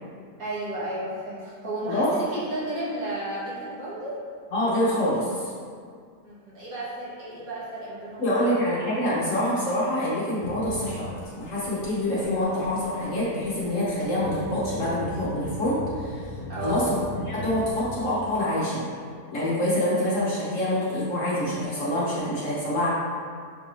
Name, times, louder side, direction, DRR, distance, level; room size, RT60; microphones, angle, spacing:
voice 1, 0.4-4.2 6.2-8.6 16.5-16.9, right 1 dB, 60° right, -9 dB, 1.7 m, -33 dB
voice 2, 4.5-5.5 8.2-11.1 11.3-16.2 16.6-18.8 19.3-22.9, left 1 dB, 55° left, -8 dB, 1.1 m, -26 dB
sound 1, 10.4-18.0, left 1 dB, 80° left, 1.2 m, -39 dB
6.4 x 2.6 x 3.2 m, 2.1 s
omnidirectional pair, 1.8 m